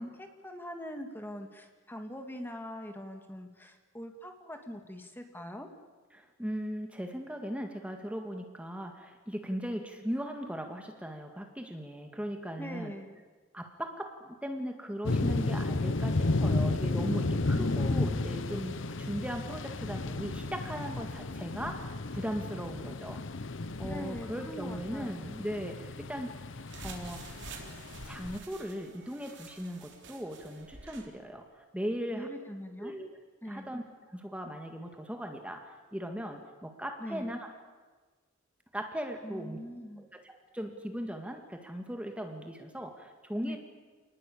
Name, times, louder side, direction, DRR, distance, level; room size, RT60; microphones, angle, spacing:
voice 1, 0.0-5.7 12.6-13.2 17.5-18.3 23.8-25.2 32.1-32.9 33.4-33.7 37.0-37.3 39.2-40.1 43.4-43.6, equal, 10° left, 5 dB, 1.9 m, -42 dB
voice 2, 6.1-12.9 13.5-23.2 23.8-26.4 26.8-27.3 28.0-32.3 32.8-33.1 33.5-37.5 38.7-39.6 40.0-43.6, equal, 5° right, 4 dB, 1.9 m, -38 dB
sound 1, 15.0-28.4, left 2 dB, 65° left, 0.9 m, -33 dB
sound 2, 26.6-31.1, right 3 dB, 60° right, 3.7 m, -48 dB
28.0 x 20.0 x 8.5 m, 1.4 s
head